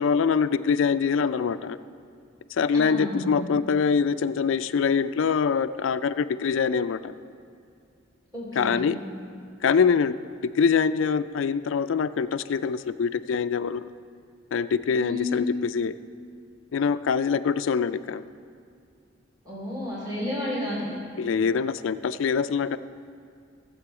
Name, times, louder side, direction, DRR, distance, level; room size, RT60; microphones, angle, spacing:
voice 1, 0.0-1.8 2.6-7.1 8.6-9.0 9.6-10.1 10.4-13.9 14.5-15.9 16.7-18.2 21.2-22.8, left 6 dB, 85° left, 13 dB, 0.4 m, -24 dB
voice 2, 2.7-3.4 8.3-8.9 15.0-15.3 19.4-20.9, left 1 dB, 20° right, -6 dB, 2.9 m, -32 dB
16.0 x 7.7 x 4.9 m, 2.4 s
head